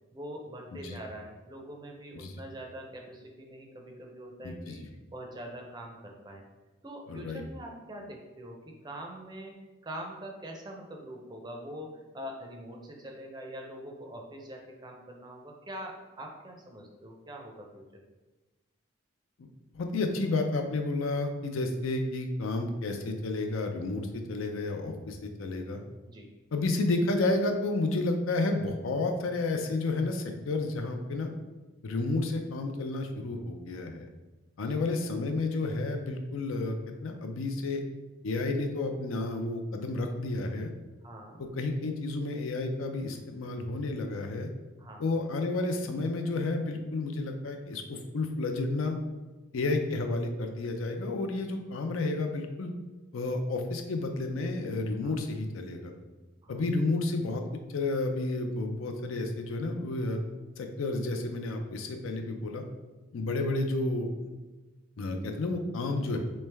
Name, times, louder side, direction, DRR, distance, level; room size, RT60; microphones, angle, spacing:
voice 1, 0.1-4.8 5.1-6.4 6.8-17.8 26.1-26.3 41.0-41.4 44.8-45.1 55.0-55.2 56.4-56.6, right 1 dB, 20° right, 1 dB, 0.4 m, -44 dB
voice 2, 7.1-7.4 19.4-19.5 19.7-25.8 26.5-31.3 31.8-34.1 34.6-37.8 38.2-40.7 41.4-44.5 45.0-49.0 49.5-52.7 53.1-55.9 56.5-57.4 57.7-60.2 60.6-62.6 63.1-64.1 65.0-66.2, left 2 dB, 85° left, 4 dB, 0.5 m, -31 dB
3.2 x 3.2 x 3.3 m, 1.2 s
head